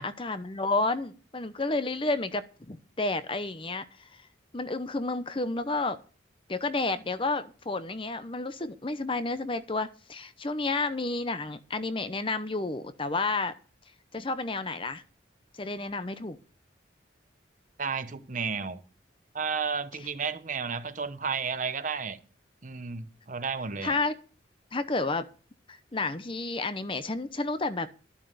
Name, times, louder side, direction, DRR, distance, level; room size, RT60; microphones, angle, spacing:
voice 1, 0.0-3.8 4.5-6.0 6.5-13.5 14.1-15.0 15.6-16.4 23.8-24.2 24.7-25.3 25.7-27.9, left 3 dB, 30° left, 0.8 m, -31 dB
voice 2, 17.8-18.8 19.3-22.2 22.6-23.9, right 5 dB, 45° right, 1.0 m, -32 dB
12.5 x 7.3 x 6.7 m
head